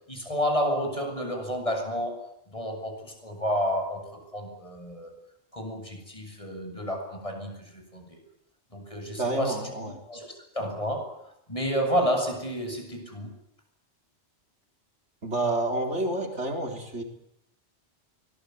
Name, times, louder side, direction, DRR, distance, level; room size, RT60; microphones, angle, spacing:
voice 1, 0.1-5.1 5.5-8.2 8.7-11.2 11.5-13.3, equal, 30° left, 3 dB, 8.2 m, -30 dB
voice 2, 9.2-10.0 15.2-17.0, right 2 dB, 80° right, 4 dB, 4.6 m, -29 dB
24.0 x 20.5 x 9.6 m, 0.75 s
omnidirectional pair, 1.2 m